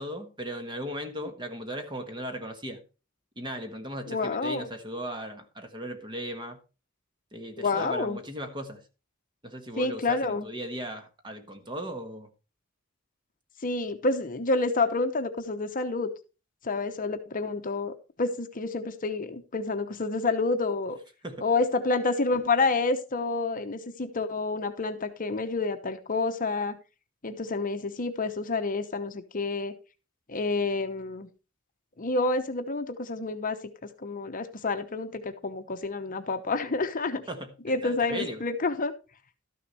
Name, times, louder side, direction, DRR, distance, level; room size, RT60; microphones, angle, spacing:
voice 1, 0.0-2.8 3.4-6.6 7.3-8.8 9.4-12.3 21.2-21.5 37.3-37.5 37.8-38.4, right 1 dB, 20° right, 1.4 m, -37 dB
voice 2, 4.1-4.7 7.6-8.2 9.8-10.5 13.6-16.1 16.6-21.0 21.4-26.8 27.2-29.7 30.3-31.3 32.0-33.6 34.0-37.2 37.6-38.9, left 3 dB, 40° left, 0.9 m, -28 dB
12.5 x 6.6 x 4.1 m
head